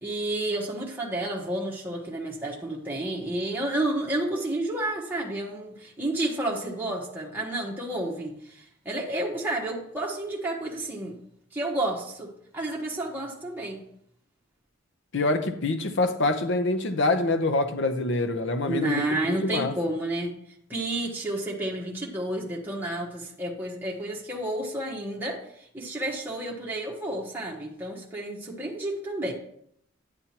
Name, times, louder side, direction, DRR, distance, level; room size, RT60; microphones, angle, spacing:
voice 1, 0.0-11.2 11.5-13.8 18.7-20.4 20.7-29.3, right 1 dB, 10° right, -3 dB, 1.2 m, -31 dB
voice 2, 15.1-19.7, left 2 dB, 60° left, 7 dB, 0.7 m, -26 dB
9.8 x 9.5 x 2.9 m, 0.71 s
head